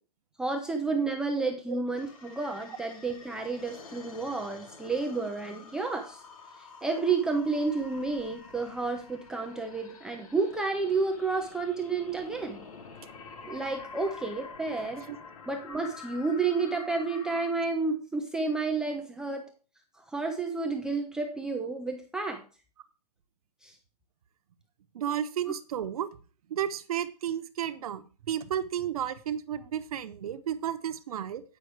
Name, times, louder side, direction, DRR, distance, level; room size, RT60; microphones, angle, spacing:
voice 1, 0.4-6.2 6.6-12.6 13.4-15.1 15.5-19.5 20.0-22.4 23.6-23.8 25.5-25.6, right 4 dB, 5° right, 2 dB, 0.4 m, -31 dB
sound 1, 1.9-17.5, left 4 dB, 55° left, 1.5 m, -48 dB
voice 2, 24.9-26.1 26.5-31.4, right 10 dB, 60° right, 10 dB, 1.0 m, -32 dB
9.4 x 5.6 x 4.8 m, 0.36 s
hypercardioid pair, 160°, 21 cm